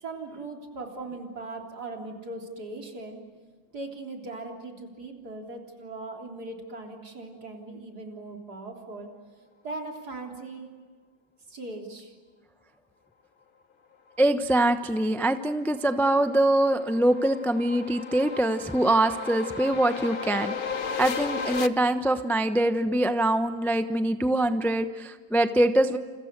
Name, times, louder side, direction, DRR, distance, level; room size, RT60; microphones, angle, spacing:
voice 1, 0.0-3.2 3.7-9.1 9.6-10.7 11.5-12.1, right 2 dB, 55° right, 2 dB, 4.0 m, -39 dB
voice 2, 14.2-20.5 21.0-26.0, right 1 dB, ahead, 9 dB, 0.5 m, -24 dB
sound 1, 15.1-21.7, left 5 dB, 45° left, 0.7 m, -35 dB
30.0 x 29.0 x 6.7 m, 1.5 s
omnidirectional pair, 2.0 m